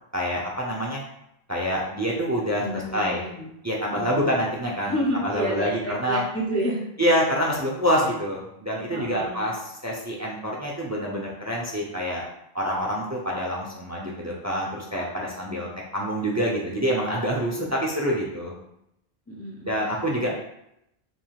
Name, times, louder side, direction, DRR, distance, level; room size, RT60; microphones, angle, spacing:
voice 1, 0.1-1.0 1.5-3.2 3.6-6.2 7.0-9.6 9.8-12.2 12.5-18.6 19.7-20.3, equal, 20° right, -2 dB, 0.7 m, -26 dB
voice 2, 2.6-3.5 3.9-4.4 4.9-6.9 8.9-9.5 17.6-17.8 19.3-19.7, equal, 15° left, -4 dB, 0.6 m, -30 dB
5.1 x 3.7 x 2.4 m, 0.78 s
omnidirectional pair, 1.1 m